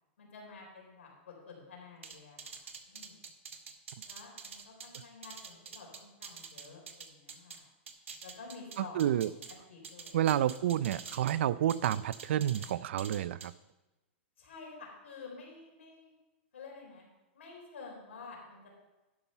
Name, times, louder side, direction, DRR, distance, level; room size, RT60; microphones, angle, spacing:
voice 1, 0.2-2.6 2.9-3.2 4.1-7.6 8.2-9.0 9.7-10.2 14.4-16.1 16.5-17.1 17.3-18.7, left 4 dB, 85° left, -1 dB, 3.9 m, -50 dB
sound 1, 2.0-7.6 7.9-9.5 9.8-11.4 11.7-12.7 13.0-13.5, right 6 dB, 90° right, 1.2 m, -46 dB
voice 2, 8.8-9.3 10.1-13.5, right 11 dB, 70° right, 19 dB, 0.4 m, -29 dB
11.5 x 5.5 x 5.5 m, 1.1 s
hypercardioid pair, 130°, 7 cm